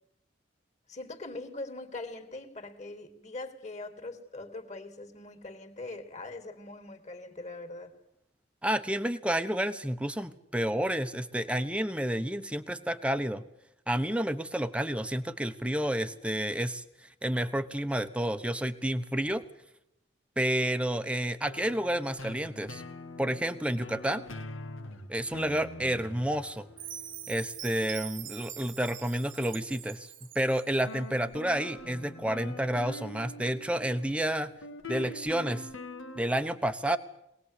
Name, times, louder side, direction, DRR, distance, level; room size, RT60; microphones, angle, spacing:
voice 1, 0.9-7.9, left 2 dB, 35° left, 6 dB, 2.9 m, -42 dB
voice 2, 8.6-13.4 13.9-16.8 17.2-19.4 20.4-22.8 23.2-24.2 25.1-26.7 27.3-30.1 30.3-34.5 34.9-35.7 36.2-37.0, right 1 dB, 5° right, 9 dB, 1.0 m, -30 dB
sound 1, 21.4-28.7 30.8-36.2, left 2 dB, 90° left, 2.2 m, -44 dB
Chime, 26.8-30.9, right 11 dB, 80° right, 1.9 m, -44 dB
23.0 x 19.0 x 8.4 m, 0.82 s
head